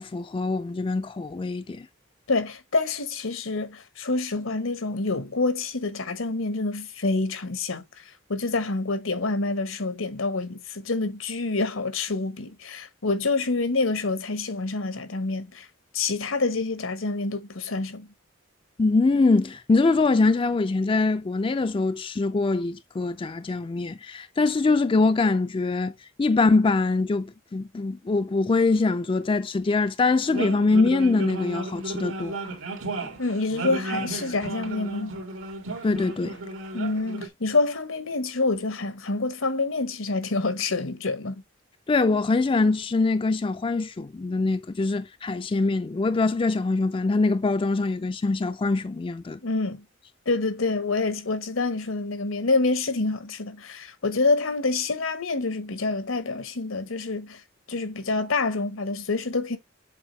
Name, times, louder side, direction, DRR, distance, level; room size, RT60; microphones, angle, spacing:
voice 1, 0.0-1.9 18.8-25.9 26.2-32.6 33.0-33.1 35.8-36.4 41.9-49.4, left 3 dB, 25° left, 0.3 m, -23 dB
voice 2, 2.3-8.0 8.3-15.7 15.9-18.1 33.2-35.2 36.7-41.4 49.4-49.8 50.2-57.4 57.7-59.6, left 3 dB, 85° left, 1.3 m, -27 dB
sound 1, 30.3-37.3, right 2 dB, 85° right, 1.9 m, -34 dB
7.4 x 4.5 x 3.1 m
head